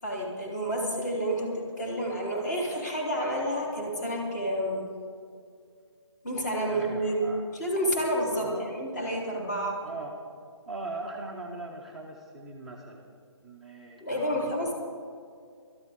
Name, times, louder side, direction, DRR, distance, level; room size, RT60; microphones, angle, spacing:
voice 1, 0.0-4.8 6.2-9.8 14.0-14.7, equal, 35° left, -2 dB, 3.7 m, -29 dB
voice 2, 6.7-7.4 8.4-8.8 9.8-10.2 10.7-13.1 13.4-14.7, right 3 dB, ahead, -6 dB, 0.5 m, -40 dB
21.5 x 13.0 x 3.7 m, 2.3 s
figure-of-eight pair, 165°, 15 cm